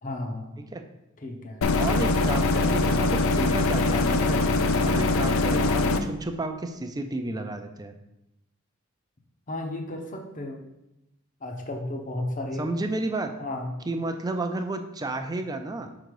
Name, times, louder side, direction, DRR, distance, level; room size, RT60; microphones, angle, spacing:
voice 1, 0.0-0.7 1.2-1.6 4.8-5.0 9.5-10.6 11.4-12.7 13.4-13.7, left 1 dB, 35° left, 3 dB, 0.8 m, -34 dB
sound 1, 1.6-6.0, left 3 dB, 65° left, 0.5 m, -23 dB
voice 2, 1.8-4.5 4.9-7.9 12.6-13.3 13.9-15.9, right 2 dB, 20° right, 6 dB, 0.4 m, -31 dB
5.6 x 3.9 x 4.7 m, 0.90 s
head